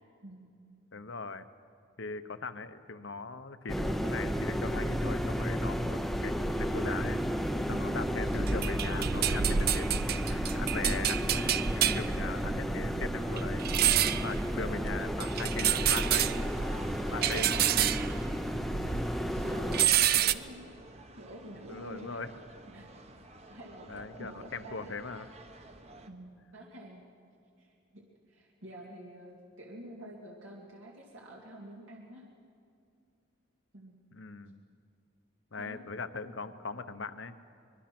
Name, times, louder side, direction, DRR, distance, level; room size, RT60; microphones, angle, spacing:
voice 1, 0.2-0.5 7.7-8.0 12.3-12.7 14.7-15.1 16.9-17.9 19.4-20.8 21.1-22.2 22.7-23.2 23.5-24.9 26.1-27.0 27.6-32.2 33.7-34.0 35.6-35.9, right 1 dB, 75° right, -2 dB, 2.4 m, -48 dB
voice 2, 0.9-1.5 2.0-7.2 7.7-13.7 14.0-16.5 17.1-17.7 21.7-22.3 23.9-25.3 34.1-34.6 35.5-37.3, left 4 dB, 70° left, 10 dB, 1.0 m, -40 dB
sound 1, 3.7-19.9, equal, ahead, 0.6 m, -32 dB
sound 2, 8.3-19.1 19.4-20.3, right 10 dB, 50° right, 0.5 m, -29 dB
sound 3, 13.1-26.1, right 2 dB, 30° right, 1.2 m, -50 dB
24.5 x 22.0 x 6.1 m, 2.3 s
head